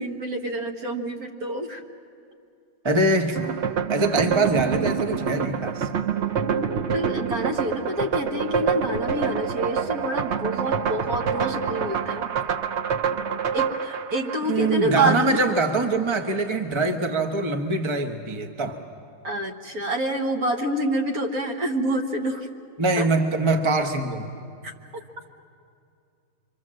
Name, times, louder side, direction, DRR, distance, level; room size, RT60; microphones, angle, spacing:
voice 1, 0.0-1.8 6.6-12.3 13.5-15.2 19.2-22.5 23.0-23.1, right 1 dB, 50° right, 4 dB, 1.7 m, -27 dB
voice 2, 2.8-3.5 3.9-5.9 14.5-18.8 22.8-24.3, right 2 dB, 20° right, 5 dB, 0.7 m, -23 dB
sound 1, 3.3-15.1, right 7 dB, 85° right, 0.6 m, -27 dB
25.5 x 24.5 x 7.6 m, 2.4 s
omnidirectional pair, 2.2 m